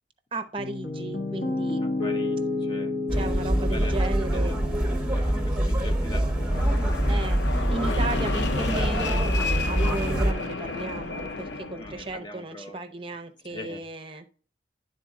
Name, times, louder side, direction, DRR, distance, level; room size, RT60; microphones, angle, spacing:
voice 1, 0.3-1.8 3.1-4.6 7.1-7.4 7.7-14.2, right 2 dB, 30° right, 8 dB, 0.6 m, -34 dB
Piano, 0.6-8.7, left 2 dB, 65° left, 0.9 m, -32 dB
voice 2, 1.8-3.9 4.3-4.6 5.1-7.3 7.9-8.0 8.2-8.4 10.2-10.4 11.7-12.8 13.5-13.8 14.1-14.3, left 2 dB, 25° left, 6 dB, 0.6 m, -42 dB
sound 1, 3.1-10.3, right 1 dB, 5° right, 1.1 m, -25 dB
Fixed-wing aircraft airplane, 6.5-12.1, left 4 dB, 90° left, 0.6 m, -32 dB
10.5 x 3.9 x 3.7 m, 0.40 s
head